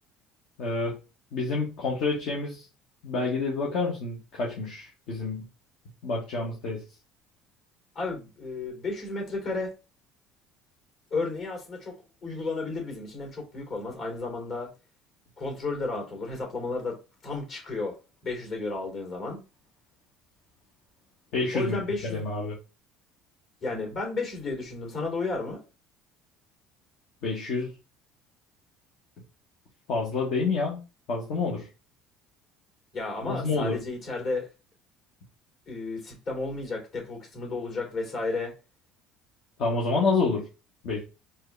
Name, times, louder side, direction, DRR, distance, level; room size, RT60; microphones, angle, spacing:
voice 1, 0.6-0.9 1.3-2.6 3.0-5.5 6.0-6.8 21.3-21.8 22.1-22.6 27.2-27.8 29.9-30.8 31.1-31.7 33.2-33.8 39.6-40.4 40.8-41.0, left 3 dB, 65° left, -3 dB, 1.2 m, -28 dB
voice 2, 7.9-9.7 11.1-11.9 12.2-14.7 15.4-17.0 17.2-17.9 18.2-19.4 21.5-22.2 23.6-25.6 32.9-34.5 35.7-38.5, left 3 dB, 50° left, 0 dB, 2.6 m, -32 dB
4.4 x 2.9 x 3.3 m, 0.31 s
supercardioid pair, 95°, 0 cm